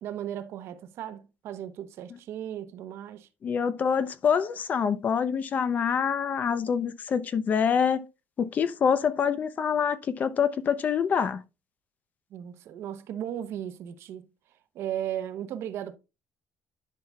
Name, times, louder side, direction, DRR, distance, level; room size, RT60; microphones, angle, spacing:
voice 1, 0.0-3.3 12.3-14.3 14.7-16.0, right 10 dB, 60° right, 0.9 m, -36 dB
voice 2, 3.4-8.0 8.4-11.4, left 7 dB, 35° left, 0.6 m, -26 dB
10.5 x 5.7 x 2.3 m
cardioid pair, 160°, 5 cm